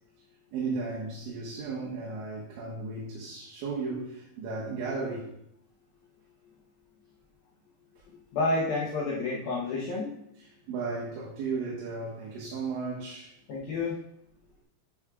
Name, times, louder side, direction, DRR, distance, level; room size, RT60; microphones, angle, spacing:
voice 1, 0.5-5.3 8.0-8.1 10.4-13.3, right 4 dB, 85° right, -5 dB, 3.7 m, -35 dB
voice 2, 8.3-10.1 13.5-14.0, left 3 dB, 70° left, -6 dB, 2.5 m, -29 dB
11.5 x 6.2 x 2.4 m, 0.74 s
omnidirectional pair, 5.1 m